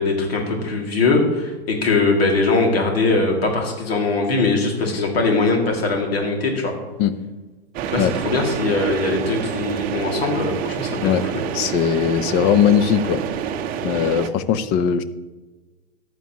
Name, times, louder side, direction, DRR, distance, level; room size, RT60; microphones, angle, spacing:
voice 1, 0.0-6.7 7.8-11.0 11.3-11.4, left 3 dB, 65° left, 1 dB, 2.4 m, -21 dB
sound 1, 7.7-14.3, right 8 dB, 25° right, 0.7 m, -27 dB
voice 2, 11.5-13.2 13.8-15.0, left 8 dB, 30° left, 13 dB, 0.7 m, -19 dB
14.5 x 9.6 x 3.0 m, 1.2 s
figure-of-eight pair, 110°, 32 cm